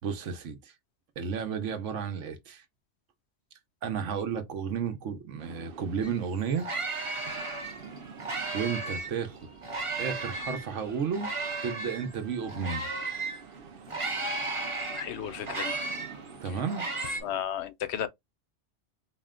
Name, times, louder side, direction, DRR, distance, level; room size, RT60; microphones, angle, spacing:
voice 1, 0.0-0.7 1.2-2.6 3.8-6.7 8.5-9.4 10.0-11.3 11.6-12.9 16.4-16.9, right 6 dB, 85° right, 1.1 m, -32 dB
sound 1, 5.4-17.4, right 5 dB, 55° right, 0.8 m, -49 dB
sound 2, 6.0-6.1 6.4-9.2 9.6-13.4 13.9-17.2, right 3 dB, 30° right, 0.9 m, -35 dB
voice 2, 14.9-15.8 16.4-16.6 17.2-18.1, left 10 dB, 70° left, 0.8 m, -34 dB
4.2 x 2.1 x 3.6 m
omnidirectional pair, 1.2 m